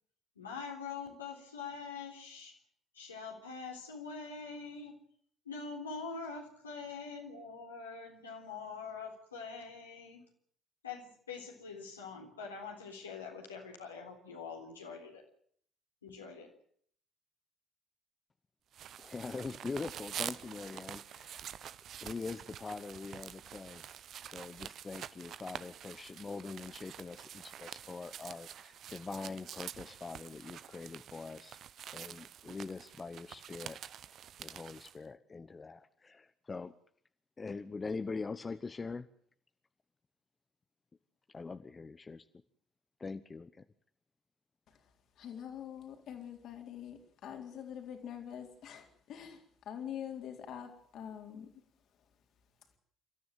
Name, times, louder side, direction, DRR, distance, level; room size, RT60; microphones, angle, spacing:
voice 1, 0.4-2.5 2.9-4.9 5.5-10.2 10.8-15.2 16.0-16.5, left 5 dB, 85° left, 0 dB, 3.7 m, -44 dB
sound 1, 18.7-35.0, right 10 dB, 55° right, 0.9 m, -47 dB
voice 2, 19.0-21.4 22.0-23.8 24.2-31.6 31.9-33.8 34.4-36.7 37.4-39.1 41.3-42.3 43.0-43.6, left 4 dB, 30° left, 11 dB, 1.1 m, -43 dB
voice 3, 45.2-51.5, left 9 dB, 60° left, 5 dB, 3.8 m, -45 dB
28.0 x 14.0 x 9.3 m, 0.62 s
figure-of-eight pair, 50°, 0 cm